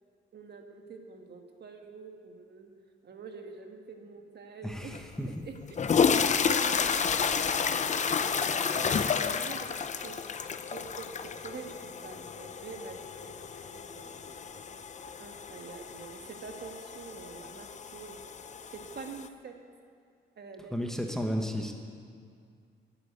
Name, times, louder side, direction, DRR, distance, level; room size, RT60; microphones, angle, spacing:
voice 1, 0.3-2.7 3.0-4.9 5.4-5.8 6.3-10.2 10.7-14.8 15.2-18.3 18.7-19.5 20.4-20.8, right 5 dB, 55° right, 4 dB, 1.6 m, -46 dB
voice 2, 4.6-5.3 20.7-21.7, equal, ahead, 2 dB, 1.2 m, -33 dB
sound 1, 4.9-5.0 5.6-19.3, left 6 dB, 35° left, 0.6 m, -31 dB
12.5 x 8.7 x 9.6 m, 2.2 s
cardioid pair, 120°, 21 cm